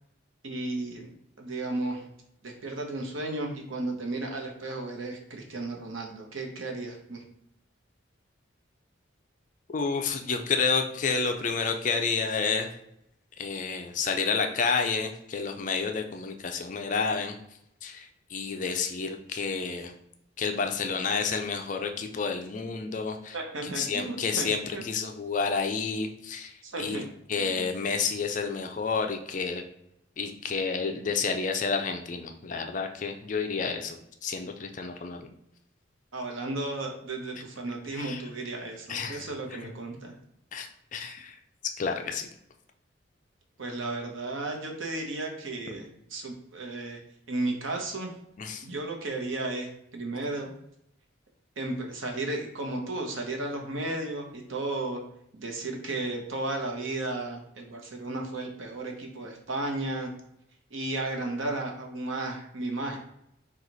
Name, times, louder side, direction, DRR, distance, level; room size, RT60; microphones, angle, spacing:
voice 1, 0.4-1.1 1.4-2.0 2.4-7.2 23.3-24.9 26.6-27.0 27.4-27.8 36.1-40.1 43.6-47.0 47.3-48.1 48.6-50.5 51.6-55.0 55.3-60.1 60.7-63.0, right 2 dB, 75° right, 2 dB, 0.9 m, -34 dB
voice 2, 9.7-12.7 13.4-17.3 17.8-19.9 20.4-23.4 23.6-26.5 26.8-27.0 27.3-29.6 30.2-35.3 37.9-38.2 38.9-39.6 40.5-41.4 41.8-42.3 48.4-48.7, left 5 dB, 40° left, 5 dB, 0.4 m, -30 dB
4.6 x 2.4 x 3.9 m, 0.77 s
head